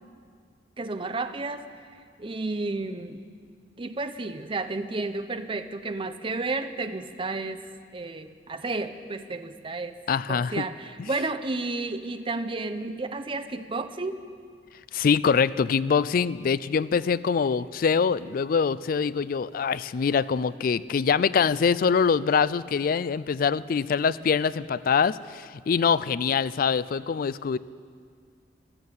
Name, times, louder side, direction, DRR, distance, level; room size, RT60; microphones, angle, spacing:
voice 1, 0.8-1.7 2.2-3.2 3.8-7.6 7.9-10.0 10.3-14.2, right 3 dB, 30° right, 10 dB, 0.7 m, -32 dB
voice 2, 10.1-10.6 14.9-27.6, left 6 dB, 50° left, 18 dB, 0.4 m, -24 dB
15.0 x 12.0 x 7.9 m, 2.1 s
head